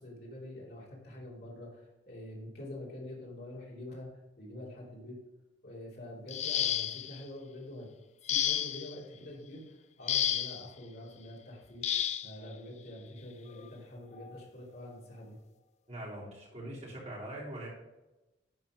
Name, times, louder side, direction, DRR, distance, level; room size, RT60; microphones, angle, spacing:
voice 1, 0.0-4.1 4.4-5.2 5.6-7.9 8.3-15.4, left 1 dB, 60° left, -4 dB, 2.9 m, -46 dB
sound 1, 6.3-7.2 8.3-8.9 10.1-10.7 11.8-12.3 13.5-13.6 14.2-14.4, left 10 dB, 35° left, 0.4 m, -31 dB
voice 2, 15.9-17.7, right 1 dB, 35° right, -5 dB, 3.2 m, -42 dB
11.0 x 4.4 x 5.0 m, 1.0 s
head